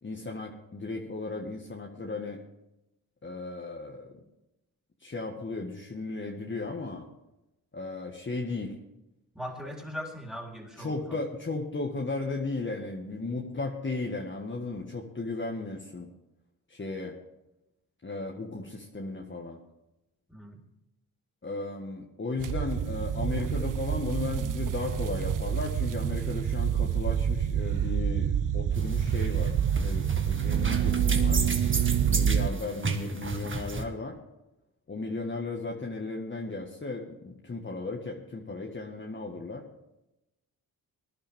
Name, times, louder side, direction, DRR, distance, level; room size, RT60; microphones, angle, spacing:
voice 1, 0.0-2.4 3.2-4.2 5.0-7.1 7.7-8.7 9.6-9.7 10.8-16.1 16.7-17.1 18.0-19.6 21.4-31.4 32.1-34.2 34.9-39.6, left 3 dB, 30° left, 0 dB, 1.7 m, -35 dB
voice 2, 9.3-11.0 20.3-20.6, equal, ahead, 0 dB, 3.8 m, -39 dB
sound 1, 22.4-32.5, right 8 dB, 55° right, 0.7 m, -27 dB
sound 2, 28.7-33.8, right 3 dB, 30° right, 1.7 m, -34 dB
19.5 x 11.0 x 3.6 m, 0.93 s
cardioid pair, 60°, 38 cm